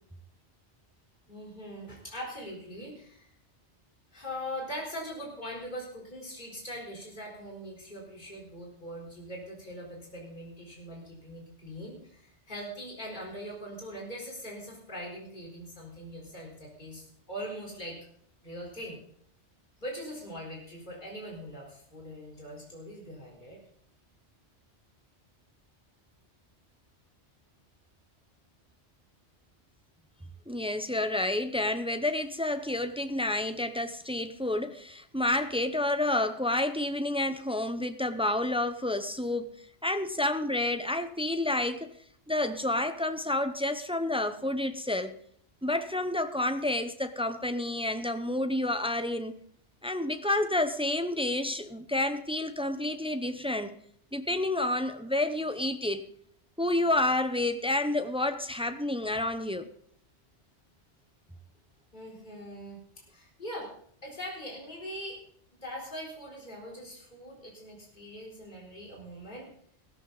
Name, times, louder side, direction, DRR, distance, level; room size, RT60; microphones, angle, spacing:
voice 1, 1.3-3.3 4.1-18.0 18.4-19.0 19.8-23.6 61.9-62.8 63.1-63.7 64.0-65.2 65.6-69.5, equal, 40° left, 4.2 m, -41 dB
voice 2, 30.5-39.6 39.8-41.9 42.3-45.2 45.6-49.3 49.8-53.8 54.1-56.1 56.6-59.7, left 1 dB, 5° right, 0.6 m, -29 dB
16.5 x 14.0 x 4.0 m
omnidirectional pair, 1.2 m